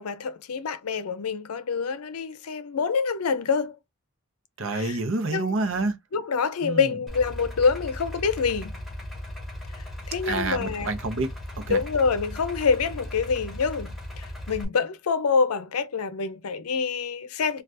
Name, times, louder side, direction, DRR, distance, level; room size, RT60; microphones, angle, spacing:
voice 1, 0.0-3.8 4.7-5.0 5.3-5.5 6.1-8.8 9.8-10.9 11.7-17.6, left 5 dB, 80° left, 0.5 m, -26 dB
voice 2, 4.6-5.9 6.6-6.9 10.3-11.3 11.6-11.8, right 3 dB, 60° right, 0.7 m, -28 dB
Idling, 7.1-14.6, left 1 dB, ahead, 0.9 m, -37 dB
2.6 x 2.4 x 3.3 m
head